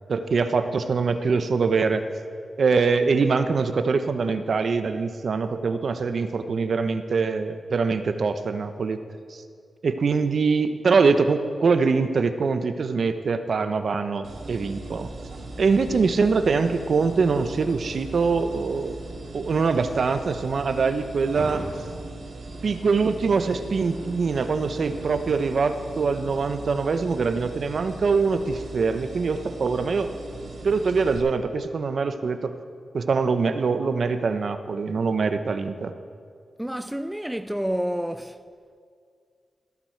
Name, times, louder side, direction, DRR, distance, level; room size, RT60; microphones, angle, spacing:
voice 1, 0.1-2.0 2.6-9.0 9.3-9.4 9.8-15.1 15.6-19.0 19.3-21.6 22.6-30.1 30.6-32.5 32.9-35.9, right 4 dB, 55° right, 0.7 m, -23 dB
sound 1, 14.2-31.2, right 2 dB, 75° right, 2.0 m, -39 dB
voice 2, 36.6-38.4, equal, 5° right, 0.3 m, -29 dB
14.5 x 13.0 x 4.5 m
wide cardioid pair, 125°, 0 cm